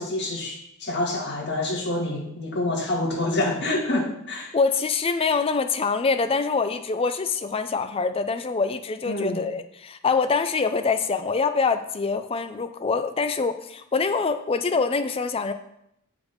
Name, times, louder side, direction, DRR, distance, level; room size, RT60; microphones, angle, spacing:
voice 1, 0.0-4.5 9.1-9.4, left 2 dB, 50° left, -1 dB, 1.7 m, -27 dB
voice 2, 4.5-15.5, left 4 dB, 25° left, 9 dB, 0.4 m, -25 dB
6.7 x 5.1 x 5.1 m, 0.78 s
head